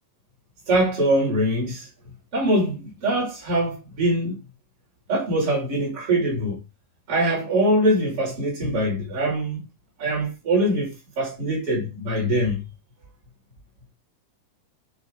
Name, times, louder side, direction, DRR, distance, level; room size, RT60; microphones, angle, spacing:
voice 1, 0.7-1.9 2.3-4.4 5.1-6.6 7.1-9.6 10.0-12.6, right 1 dB, 40° right, 6.6 m, -23 dB
13.0 x 4.4 x 3.8 m
omnidirectional pair, 3.9 m